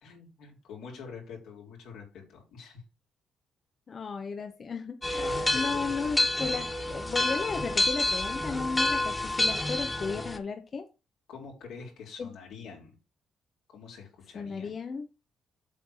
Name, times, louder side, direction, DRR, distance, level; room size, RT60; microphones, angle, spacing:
voice 1, 0.0-2.8 5.1-6.2 11.3-12.9 13.7-14.7, left 5 dB, 85° left, 3.9 m, -45 dB
voice 2, 3.9-5.2 5.5-10.9 12.2-12.3 14.3-15.1, left 5 dB, 45° left, 1.0 m, -34 dB
sound 1, 5.0-10.4, left 1 dB, 15° left, 1.7 m, -28 dB
7.9 x 4.6 x 6.4 m
cardioid pair, 90°, 0 cm